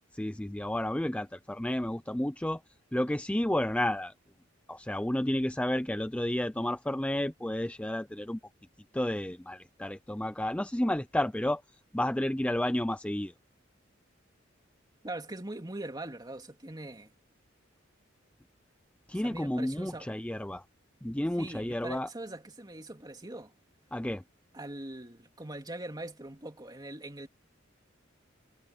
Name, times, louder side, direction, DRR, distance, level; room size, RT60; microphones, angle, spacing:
voice 1, 0.1-2.6 2.9-4.1 4.7-8.4 8.9-11.6 11.9-13.3 19.1-20.6 21.0-22.1 23.9-24.2, left 1 dB, 5° left, 0.5 m, -31 dB
voice 2, 15.0-17.1 19.1-20.1 21.4-23.5 24.5-27.3, right 1 dB, 20° right, 3.2 m, -42 dB
head